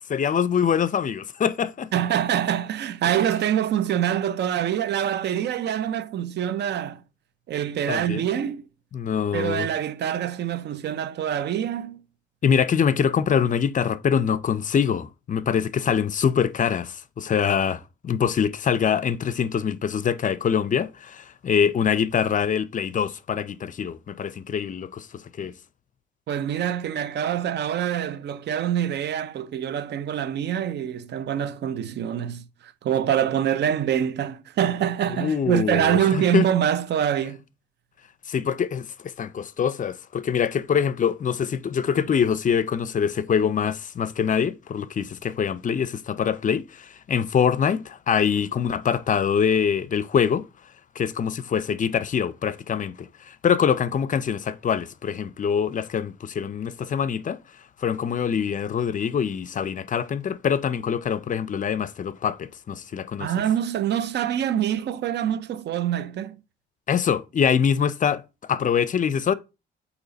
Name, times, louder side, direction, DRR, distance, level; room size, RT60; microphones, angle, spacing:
voice 1, 0.1-1.9 7.9-8.2 8.9-9.7 12.4-25.1 25.4-25.5 35.2-36.5 38.3-50.4 51.0-57.4 57.8-63.3 66.9-68.2 68.5-69.3, left 7 dB, 40° left, 0.5 m, -24 dB
voice 2, 1.9-7.0 7.5-8.7 9.3-12.0 26.3-37.4 63.2-66.4, right 10 dB, 60° right, 0.5 m, -25 dB
8.3 x 2.9 x 3.9 m
cardioid pair, 90°, 20 cm